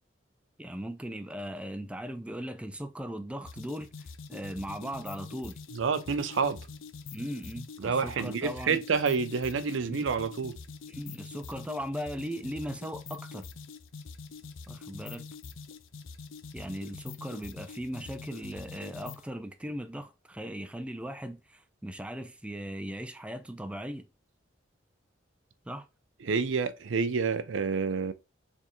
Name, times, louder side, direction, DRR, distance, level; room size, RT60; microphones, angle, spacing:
voice 1, 0.6-5.6 7.1-8.8 9.8-10.1 10.9-13.5 14.7-15.2 16.5-24.1 25.7-25.9, equal, 5° right, 0.4 m, -38 dB
sound 1, 3.5-19.3, left 4 dB, 85° left, 0.5 m, -45 dB
voice 2, 5.7-6.6 7.8-10.6 26.2-28.1, right 5 dB, 75° right, 0.5 m, -28 dB
4.4 x 3.5 x 3.0 m
head